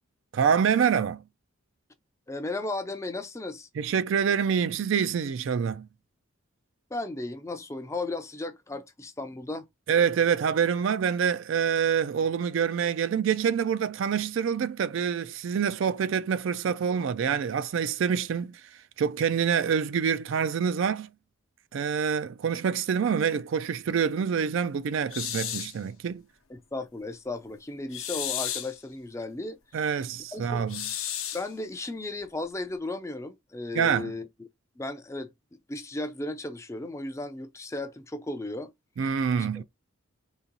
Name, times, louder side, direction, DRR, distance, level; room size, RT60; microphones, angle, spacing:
voice 1, 0.3-1.2 3.8-5.9 9.9-18.6 19.0-21.1 21.7-26.2 29.7-30.9 33.7-34.1 39.0-39.6, right 7 dB, 65° right, 0.3 m, -26 dB
voice 2, 2.3-3.7 6.9-9.7 26.5-29.9 30.3-30.7 31.3-34.3 34.8-35.3 35.7-38.7 39.0-39.1 39.4-39.6, left 2 dB, 15° left, 0.4 m, -35 dB
sound 1, 25.1-25.8 27.9-28.8 30.7-31.5, left 11 dB, 75° left, 0.7 m, -33 dB
3.9 x 2.9 x 2.8 m
head